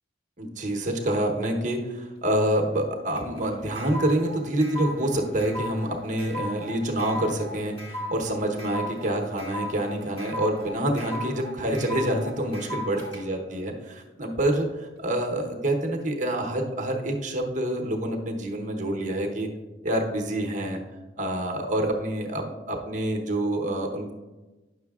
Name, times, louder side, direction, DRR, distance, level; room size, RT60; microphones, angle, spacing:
voice 1, 0.4-19.5 19.8-20.8 21.2-24.1, right 1 dB, 40° right, 2 dB, 0.9 m, -27 dB
sound 1, 3.1-13.2, left 1 dB, 30° left, 1.7 m, -37 dB
9.7 x 6.4 x 2.4 m, 1.2 s
head